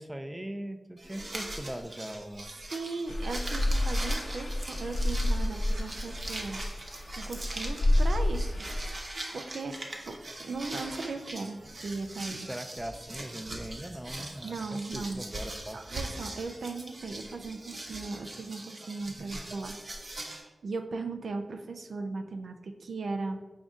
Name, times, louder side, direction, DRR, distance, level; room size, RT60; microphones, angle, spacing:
voice 1, 0.0-2.5 12.3-15.8, right 1 dB, 15° right, 8 dB, 0.4 m, -40 dB
sound 1, 1.0-20.4, right 1 dB, 55° right, 0.8 m, -41 dB
voice 2, 2.7-6.6 7.2-8.7 9.3-9.8 10.1-12.5 14.4-15.2 15.7-19.8 20.3-23.4, right 3 dB, 85° right, 6 dB, 0.4 m, -37 dB
sound 2, 3.1-8.9, left 1 dB, 70° left, 0.7 m, -29 dB
4.9 x 2.6 x 3.5 m, 1.1 s
cardioid pair, 55°, 0 cm